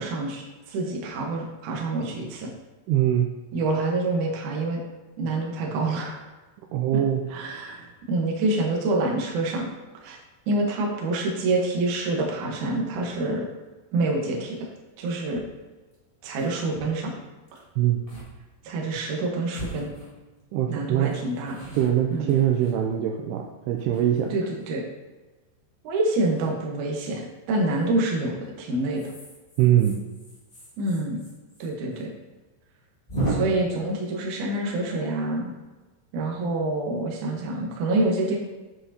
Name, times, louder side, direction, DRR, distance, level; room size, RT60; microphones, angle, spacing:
voice 1, 0.0-2.5 3.5-4.8 5.2-6.2 7.3-9.7 10.0-10.2 10.5-13.5 13.9-14.7 15.0-15.4 16.2-17.1 17.5-17.6 18.6-19.9 20.7-21.6 22.1-22.4 24.3-24.8 25.8-29.1 30.8-31.2 31.6-32.1 33.3-35.5 36.1-38.4, right 2 dB, 65° right, -1 dB, 2.2 m, -27 dB
voice 2, 2.9-3.3 6.7-7.2 17.8-18.0 20.5-21.2 21.8-24.4 29.6-30.0, right 11 dB, 80° right, 2 dB, 2.5 m, -22 dB
sound 1, 15.3-15.4 15.9-16.0 16.2-16.6 17.5-17.6 18.1-18.3 18.6-18.7 19.5-20.5 21.0-23.2 23.8-24.6 26.2-26.5 27.8-28.1 28.9-31.7 31.9-32.0 32.3-32.4 33.1-33.3, right 2 dB, 35° left, 0.8 m, -36 dB
8.0 x 7.8 x 2.8 m, 1.2 s
omnidirectional pair, 4.9 m